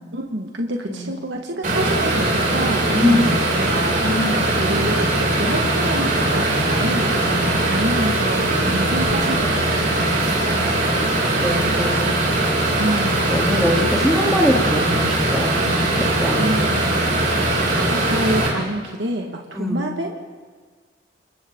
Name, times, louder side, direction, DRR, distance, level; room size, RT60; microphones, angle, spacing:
voice 1, 0.1-11.1 12.8-13.4 16.4-20.2, right 1 dB, 70° right, 1 dB, 1.9 m, -28 dB
sound 1, 1.6-18.5, right 1 dB, 45° right, 6.6 m, -20 dB
voice 2, 2.9-3.3 4.0-4.4 5.4-5.6 7.2-7.6 8.7-8.9 11.4-12.2 13.3-16.6 19.5-19.8, left 1 dB, ahead, -2 dB, 3.3 m, -23 dB
29.5 x 27.5 x 3.9 m, 1.5 s
head